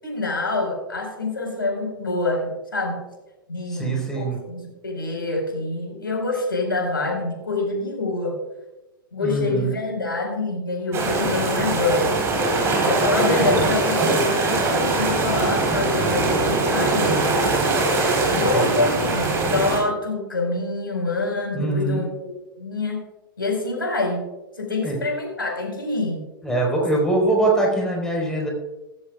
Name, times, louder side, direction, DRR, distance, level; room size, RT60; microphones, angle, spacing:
voice 1, 0.0-3.0 3.5-8.4 9.1-12.2 12.8-17.2 18.3-23.0 23.4-24.3 24.6-26.2, left 2 dB, 75° left, 1 dB, 4.9 m, -26 dB
voice 2, 3.7-4.4 9.2-9.7 13.3-13.4 18.4-19.0 21.5-22.0 24.8-25.0 26.4-28.5, right 2 dB, 5° left, -2 dB, 4.5 m, -23 dB
sound 1, 10.9-19.8, right 2 dB, 20° right, 4.1 m, -21 dB
16.5 x 15.5 x 2.4 m, 0.99 s
figure-of-eight pair, 105°, 12 cm